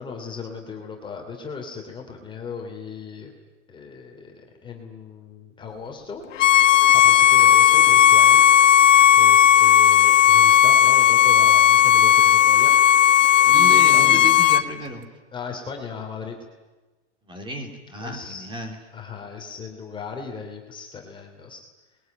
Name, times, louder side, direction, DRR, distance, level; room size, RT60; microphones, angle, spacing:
voice 1, 0.0-3.3 3.7-6.2 6.9-8.4 9.2-12.7 13.5-14.3 15.3-16.4 18.0-18.5 18.9-21.6, left 5 dB, 15° left, 1 dB, 2.9 m, -37 dB
Bowed string instrument, 6.4-14.6, left 10 dB, 90° left, 1.2 m, -15 dB
voice 2, 13.4-15.0 17.3-18.8, equal, 15° right, 4 dB, 3.4 m, -33 dB
27.5 x 21.5 x 9.2 m, 1.2 s
supercardioid pair, 155°, 36 cm